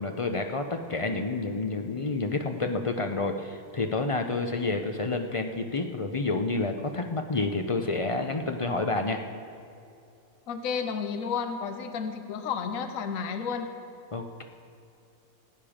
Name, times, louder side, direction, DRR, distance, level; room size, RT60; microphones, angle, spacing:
voice 1, 0.0-9.2 14.1-14.4, left 3 dB, 45° left, 5 dB, 0.4 m, -29 dB
voice 2, 10.5-13.7, left 6 dB, 65° left, 7 dB, 1.2 m, -32 dB
18.0 x 8.9 x 5.0 m, 2.6 s
omnidirectional pair, 1.6 m